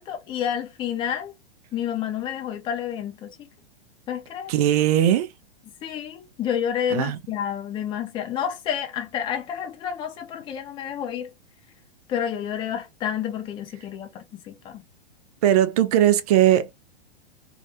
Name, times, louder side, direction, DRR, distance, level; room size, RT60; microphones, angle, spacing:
voice 1, 0.0-1.3 1.7-3.4 4.1-4.5 5.8-11.3 12.1-14.8, left 9 dB, 15° left, 0.5 m, -29 dB
voice 2, 4.5-5.3 6.9-7.2 15.4-16.7, right 12 dB, 40° right, 0.4 m, -19 dB
2.4 x 2.0 x 2.6 m
figure-of-eight pair, 100°, 30 cm